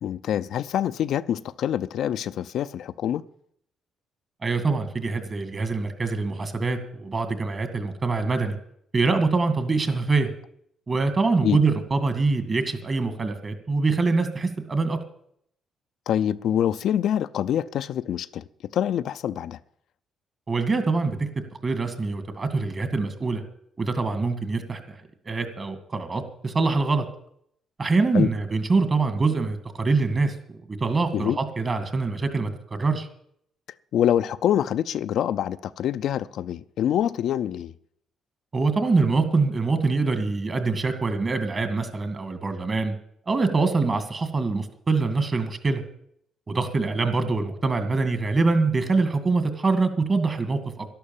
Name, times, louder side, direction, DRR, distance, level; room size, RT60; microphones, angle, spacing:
voice 1, 0.0-3.2 11.4-11.6 16.1-18.5 18.7-19.6 28.1-28.3 31.1-31.4 33.9-37.7, left 10 dB, 75° left, 0.5 m, -25 dB
voice 2, 4.4-8.6 8.9-10.3 10.9-15.0 20.5-23.4 23.8-25.0 25.3-27.1 27.8-33.1 38.5-43.0 43.3-45.8 46.5-50.9, right 3 dB, 35° right, 2.1 m, -24 dB
12.0 x 11.5 x 7.2 m
cardioid pair, 90°, 0 cm